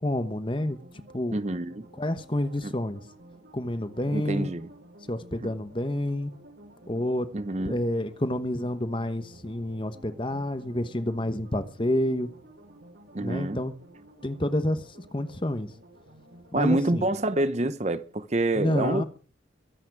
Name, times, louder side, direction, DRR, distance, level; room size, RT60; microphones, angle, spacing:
voice 1, 0.0-0.8 1.1-1.4 2.0-3.0 3.5-4.5 5.1-6.3 6.9-7.3 7.7-12.3 13.2-13.7 14.2-14.8 15.1-15.7 16.5-17.0 18.5-19.0, left 1 dB, 25° left, 1.1 m, -28 dB
sound 1, 0.6-16.5, right 1 dB, 75° right, 5.1 m, -52 dB
voice 2, 1.3-1.9 2.6-2.7 4.1-4.7 5.4-5.5 7.3-7.8 13.1-13.6 16.5-19.0, right 2 dB, 35° right, 0.7 m, -27 dB
23.0 x 8.7 x 4.8 m
head